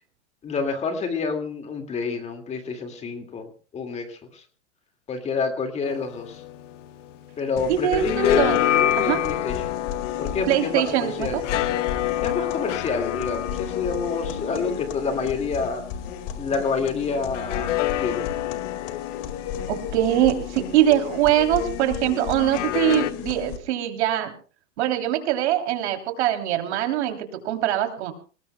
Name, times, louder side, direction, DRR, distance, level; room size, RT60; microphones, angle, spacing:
voice 1, 0.4-3.5 3.7-4.4 5.1-6.4 7.4-9.7 10.2-11.4 12.2-15.8 16.4-18.3, left 4 dB, 20° left, 6 dB, 2.1 m, -28 dB
sound 1, 5.8-7.5 7.8-16.5 17.3-21.4 22.4-23.1, left 14 dB, 85° left, 0.9 m, -29 dB
sound 2, 7.6-23.6, left 8 dB, 40° left, 2.0 m, -34 dB
voice 2, 7.7-8.6 9.0-9.2 10.5-11.4 19.7-24.3 24.8-28.1, right 12 dB, 65° right, 5 dB, 3.2 m, -23 dB
28.0 x 19.5 x 2.2 m, 0.38 s
supercardioid pair, 155°, 36 cm